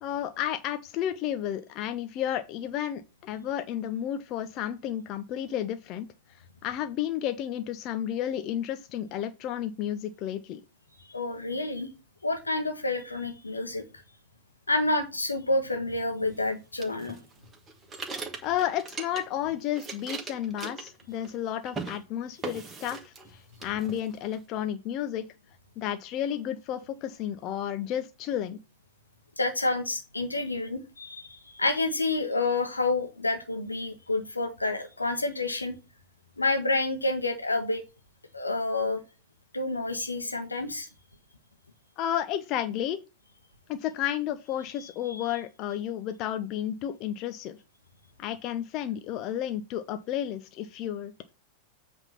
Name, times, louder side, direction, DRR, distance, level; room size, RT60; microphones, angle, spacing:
voice 1, 0.0-10.6 18.4-25.3 25.8-28.6 42.0-43.0 43.7-47.6 48.2-51.1, left 11 dB, 40° left, 0.6 m, -32 dB
voice 2, 11.1-11.9 12.2-13.8 14.7-17.2 29.4-35.8 36.4-37.8 38.3-39.0 39.5-40.9 45.1-45.3, left 2 dB, 80° left, 1.4 m, -29 dB
sound 1, 16.8-19.4 19.7-21.4 21.6-22.0 22.4-23.3 23.6-24.4, right 4 dB, 15° right, 1.6 m, -39 dB
8.0 x 3.6 x 5.8 m
figure-of-eight pair, 90°, 0 cm